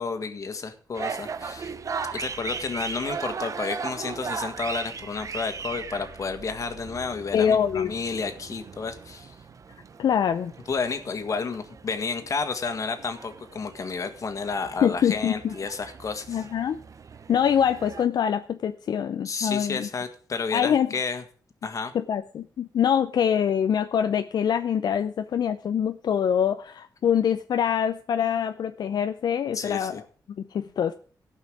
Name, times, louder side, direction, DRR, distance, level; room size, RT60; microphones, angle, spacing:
voice 1, 0.0-1.7 2.1-9.3 10.7-16.4 19.2-21.2 21.6-21.9 29.5-30.0, left 4 dB, 50° left, 8 dB, 1.7 m, -31 dB
sound 1, 0.9-18.1, right 5 dB, 50° right, 0.8 m, -38 dB
voice 2, 7.3-7.9 10.0-10.5 14.8-15.5 16.3-16.8 17.3-19.9 20.5-20.9 21.9-30.0 30.5-30.9, left 8 dB, 75° left, 8 dB, 0.6 m, -24 dB
16.5 x 5.6 x 6.2 m, 0.43 s
wide cardioid pair, 110°, 7 cm